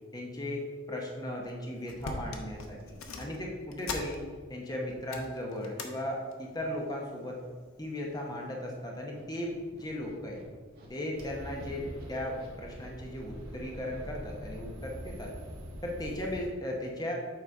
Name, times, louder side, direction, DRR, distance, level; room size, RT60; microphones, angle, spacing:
voice 1, 0.1-4.2 4.5-7.4 7.8-10.4 10.9-15.3 15.8-17.1, left 1 dB, 20° left, -1 dB, 0.9 m, -37 dB
sound 1, 1.4-1.5 1.8-4.6 4.9-5.9 6.3-6.6 7.4-7.9 8.4-8.5, left 3 dB, 70° left, 0.8 m, -41 dB
sound 2, 2.7-2.8 3.4-4.9 5.2-6.0 6.5-6.7 7.1-7.5 7.8-8.3 8.6-14.8, right 1 dB, 45° right, 1.4 m, -58 dB
sound 3, 11.1-16.5, equal, 65° right, 1.8 m, -44 dB
7.8 x 4.0 x 4.7 m, 1.5 s
head